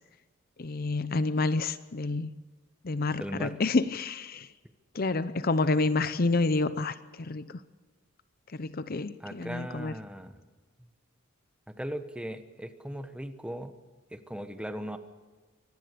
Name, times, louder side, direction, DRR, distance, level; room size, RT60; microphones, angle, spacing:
voice 1, 0.6-2.3 2.8-4.5 4.9-7.6 8.5-9.9, left 3 dB, 45° left, 14 dB, 0.7 m, -29 dB
voice 2, 3.2-3.5 9.2-10.4 10.8-10.9 11.7-13.7 14.1-15.0, equal, 5° right, 8 dB, 1.2 m, -38 dB
24.5 x 19.0 x 6.8 m, 1.4 s
head